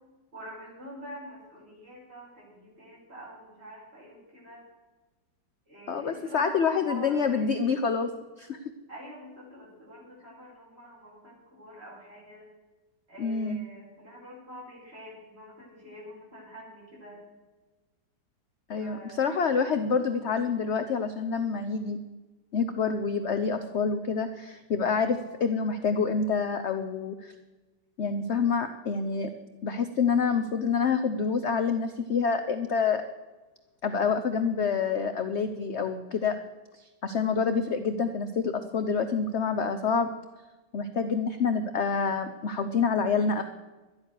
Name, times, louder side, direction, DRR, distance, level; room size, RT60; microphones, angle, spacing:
voice 1, 0.3-4.7 5.7-7.9 8.9-12.5 13.1-17.2 18.8-19.3, right 1 dB, 30° right, -6 dB, 5.7 m, -45 dB
voice 2, 5.9-8.1 8.4-8.6 13.2-13.6 18.7-22.0 22.5-27.3 28.0-29.3 29.6-33.0 33.8-36.4 36.7-40.1 40.7-43.4, left 5 dB, 60° left, 8 dB, 0.7 m, -27 dB
12.5 x 10.5 x 6.4 m, 1.2 s
omnidirectional pair, 2.0 m